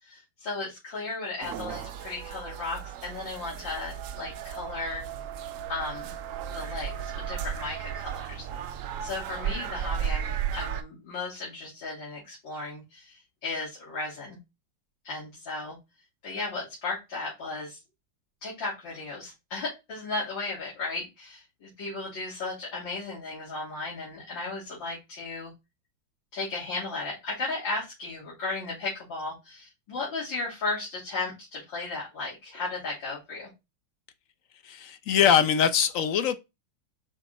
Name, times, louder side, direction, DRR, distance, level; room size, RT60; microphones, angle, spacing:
voice 1, 0.0-5.0 5.7-6.1 6.5-14.4 15.0-15.8 16.2-17.8 18.4-25.5 26.3-33.5, left 3 dB, 85° left, 3.5 m, -35 dB
sound 1, 1.4-10.8, right 9 dB, 80° right, 0.7 m, -35 dB
voice 2, 34.6-36.4, left 8 dB, 60° left, 0.9 m, -22 dB
5.7 x 4.3 x 4.1 m
omnidirectional pair, 2.0 m